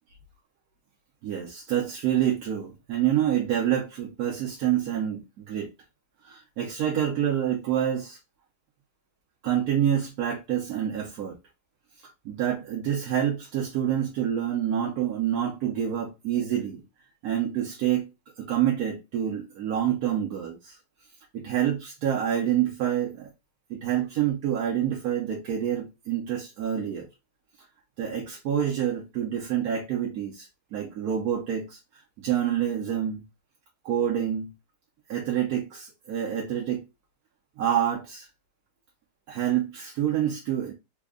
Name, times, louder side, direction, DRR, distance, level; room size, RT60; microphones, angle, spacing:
voice 1, 1.2-5.7 6.2-8.2 9.4-11.4 12.2-16.8 17.2-18.1 18.4-20.8 21.3-23.3 23.7-27.1 28.0-31.8 32.2-33.2 33.8-34.5 35.1-36.8 37.6-38.3 39.3-40.7, right 10 dB, 70° right, 1.1 m, -27 dB
3.4 x 2.1 x 3.4 m
omnidirectional pair, 1.8 m